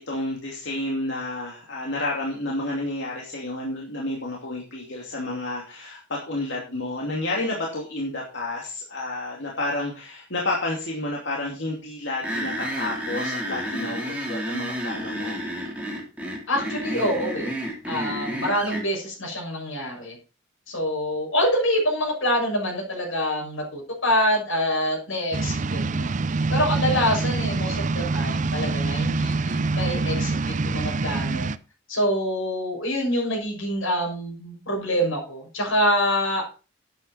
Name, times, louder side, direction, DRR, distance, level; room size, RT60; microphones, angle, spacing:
voice 1, 0.0-15.4, left 2 dB, 60° left, -2 dB, 2.7 m, -30 dB
sound 1, 12.2-18.8, equal, 5° right, 3.7 m, -30 dB
voice 2, 16.5-17.5 17.9-20.2 20.7-26.1 26.5-31.5 31.9-36.5, equal, 80° left, 0 dB, 6.6 m, -26 dB
sound 2, 25.3-31.6, right 3 dB, 40° right, 0.5 m, -25 dB
12.0 x 8.9 x 4.3 m, 0.34 s
head